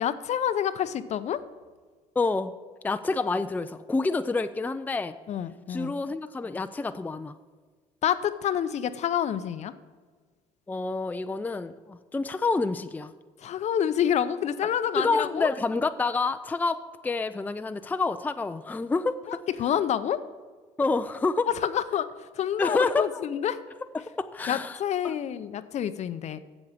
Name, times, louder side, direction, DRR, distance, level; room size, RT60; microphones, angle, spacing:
voice 1, 0.0-1.4 5.3-6.0 8.0-9.7 13.4-15.5 19.3-20.2 21.5-22.1 22.3-23.6 24.5-26.4, left 9 dB, 50° left, 13 dB, 0.6 m, -28 dB
voice 2, 2.2-2.5 2.8-5.1 5.7-7.3 10.7-13.1 15.0-19.4 20.8-21.5 22.6-23.2 23.9-24.8 25.0-25.1, left 3 dB, 10° left, 10 dB, 0.4 m, -28 dB
8.0 x 7.3 x 7.1 m, 1.5 s
supercardioid pair, 75°, 15 cm